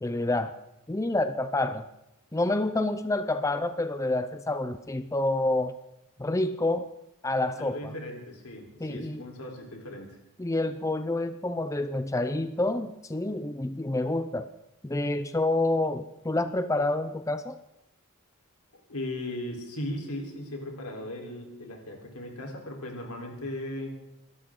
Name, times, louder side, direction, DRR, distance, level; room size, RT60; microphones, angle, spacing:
voice 1, 0.0-0.5 0.9-1.9 2.3-5.7 6.2-6.9 7.2-7.9 8.8-9.2 10.4-14.5 14.8-17.6, left 2 dB, 15° left, 10 dB, 0.5 m, -28 dB
voice 2, 7.6-10.1 18.7-23.9, left 1 dB, 80° left, 1 dB, 3.9 m, -37 dB
25.0 x 12.5 x 3.8 m, 0.88 s
head